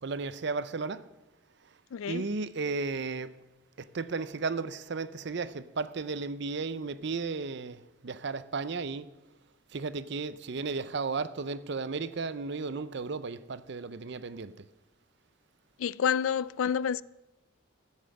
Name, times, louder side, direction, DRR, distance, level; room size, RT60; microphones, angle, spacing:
voice 1, 0.0-1.1 2.1-3.3 3.8-9.1 9.7-14.7, right 4 dB, 55° right, 0.6 m, -34 dB
voice 2, 1.9-2.3 15.8-17.0, left 8 dB, 80° left, 0.3 m, -28 dB
13.5 x 7.3 x 7.7 m
head